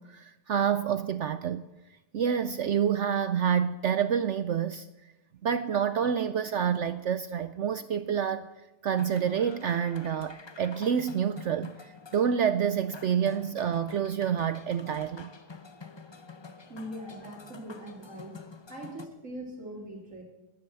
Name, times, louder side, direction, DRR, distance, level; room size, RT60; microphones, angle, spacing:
voice 1, 0.0-1.6 2.1-4.9 5.4-8.5 8.8-15.3, right 8 dB, 70° right, 0.6 m, -28 dB
sound 1, 8.9-19.1, left 4 dB, 35° left, 0.4 m, -48 dB
voice 2, 16.7-18.4 18.7-20.2, equal, 45° right, 3.5 m, -41 dB
12.5 x 10.5 x 7.7 m
omnidirectional pair, 1.8 m